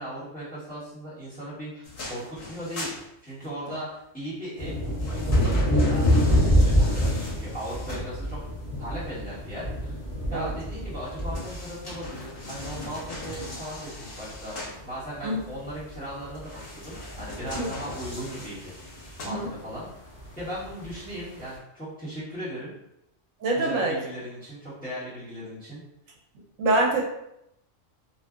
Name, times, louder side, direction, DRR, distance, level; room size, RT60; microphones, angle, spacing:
voice 1, 0.0-2.9 3.2-3.9 4.1-8.4 8.8-10.0 10.3-18.7 19.0-19.9 20.4-22.7 23.5-25.8, equal, 5° left, -11 dB, 1.3 m, -38 dB
sound 1, 1.8-3.7 4.6-8.5 11.0-14.8 16.3-19.8 20.4-20.5, left 2 dB, 80° left, 1.2 m, -40 dB
sound 2, 4.6-19.3 19.6-19.7 19.8-21.5, equal, 30° left, 0.8 m, -26 dB
voice 2, 23.4-23.9 26.6-27.0, right 2 dB, 80° right, 0 dB, 1.0 m, -25 dB
2.7 x 2.5 x 2.4 m, 0.81 s
omnidirectional pair, 1.3 m